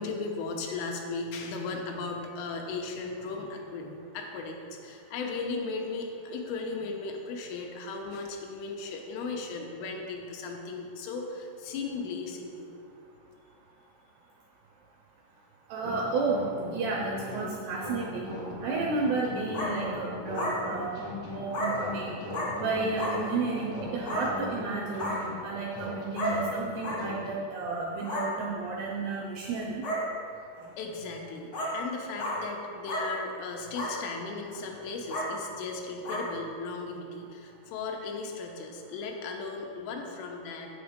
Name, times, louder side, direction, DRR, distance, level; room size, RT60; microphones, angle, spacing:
voice 1, 0.0-12.7 30.8-40.7, left 4 dB, 80° left, 1 dB, 3.4 m, -36 dB
voice 2, 15.7-16.5 16.7-18.3 18.6-20.9 21.3-22.1 22.6-25.1 25.4-29.8, right 3 dB, 80° right, -1 dB, 2.4 m, -32 dB
sound 1, 15.8-27.3, left 1 dB, 20° left, 0.6 m, -39 dB
sound 2, 19.5-19.7 20.3-20.5 21.5-21.7 22.3-22.5 23.0-23.1 24.0-24.2 24.9-25.2 26.1-26.3 26.8-27.0 28.0-28.2 29.1-29.2 29.8-30.0 30.6-30.7 31.5-31.7 32.2-32.4 32.9-33.0 33.7-33.9 34.4-34.6 35.1-35.3 36.0-36.2, left 1 dB, 50° left, 1.1 m, -32 dB
8.2 x 8.1 x 5.1 m, 2.3 s
omnidirectional pair, 5.6 m